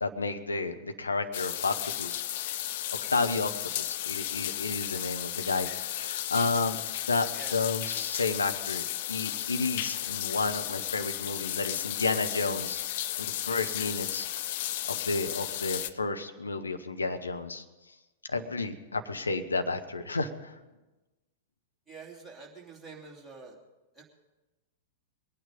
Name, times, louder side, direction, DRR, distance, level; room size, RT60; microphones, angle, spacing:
voice 1, 0.0-2.2 3.1-6.8 7.1-12.8 13.2-14.3 14.8-17.6 18.2-20.6, left 3 dB, 75° left, 6 dB, 1.1 m, -31 dB
sound 1, 1.3-15.9, left 13 dB, 50° left, 0.5 m, -34 dB
voice 2, 21.9-23.5 23.9-24.0, right 4 dB, 5° right, -4 dB, 3.0 m, -47 dB
22.0 x 9.2 x 5.3 m, 1.1 s
figure-of-eight pair, 100°, 0 cm